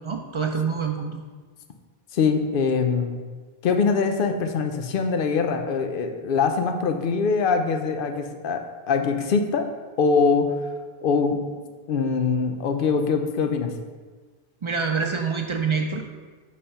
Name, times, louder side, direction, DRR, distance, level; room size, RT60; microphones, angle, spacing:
voice 1, 0.0-1.2 14.6-16.1, right 5 dB, 55° right, 3 dB, 0.3 m, -26 dB
voice 2, 2.1-3.2 3.6-10.7 11.0-11.4 11.9-13.8, left 5 dB, 60° left, 6 dB, 0.7 m, -23 dB
5.5 x 3.3 x 5.5 m, 1.4 s
omnidirectional pair, 1.1 m